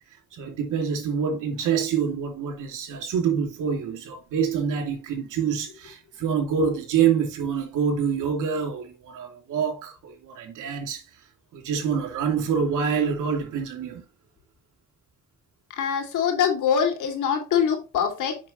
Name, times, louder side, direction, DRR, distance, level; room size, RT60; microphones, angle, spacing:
voice 1, 0.3-11.0 11.5-14.0, right 7 dB, 85° right, 2.8 m, -26 dB
voice 2, 15.8-18.4, left 7 dB, 80° left, 2.8 m, -23 dB
7.4 x 6.0 x 3.1 m
cardioid pair, 90°, 30 cm